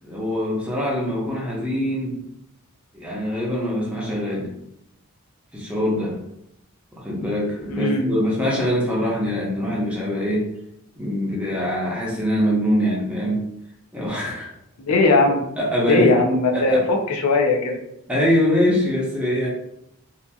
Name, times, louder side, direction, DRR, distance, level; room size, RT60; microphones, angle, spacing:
voice 1, 0.0-2.2 2.9-4.5 5.5-6.2 7.0-10.5 11.0-13.4 13.9-14.5 15.6-16.2 16.5-16.8 18.1-19.5, equal, 5° right, -5 dB, 0.6 m, -23 dB
voice 2, 7.7-8.1 14.9-15.4 15.9-17.8, left 3 dB, 80° left, 3 dB, 0.5 m, -19 dB
2.8 x 2.5 x 2.3 m, 0.77 s
head